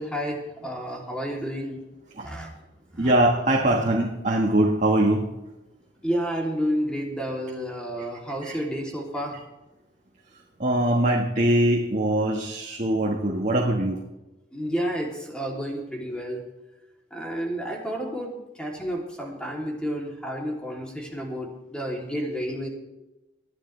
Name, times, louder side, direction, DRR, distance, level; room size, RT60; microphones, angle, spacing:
voice 1, 0.0-1.8 2.2-2.5 2.9-3.1 6.0-9.3 14.5-16.4 17.1-18.3 18.6-22.7, equal, 5° left, -2 dB, 3.1 m, -30 dB
voice 2, 3.0-5.2 8.4-8.5 10.6-14.0, right 1 dB, 40° right, -1 dB, 1.7 m, -22 dB
21.0 x 12.0 x 3.4 m, 0.99 s
head